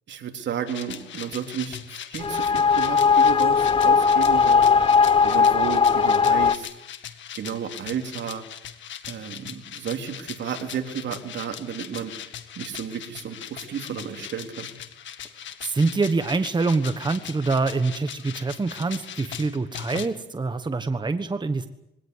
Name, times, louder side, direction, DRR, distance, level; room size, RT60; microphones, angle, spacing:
voice 1, 0.1-1.8 2.1-4.6 5.2-6.7 7.3-8.4 9.1-12.1 12.6-14.7, right 8 dB, 65° right, 4 dB, 3.6 m, -32 dB
sound 1, 0.7-20.1, left 9 dB, 70° left, 1.9 m, -40 dB
sound 2, 2.2-6.5, left 5 dB, 25° left, 1.1 m, -18 dB
voice 2, 15.6-21.7, right 3 dB, 20° right, 9 dB, 1.3 m, -25 dB
23.0 x 18.0 x 9.7 m, 0.84 s
cardioid pair, 90°, 20 cm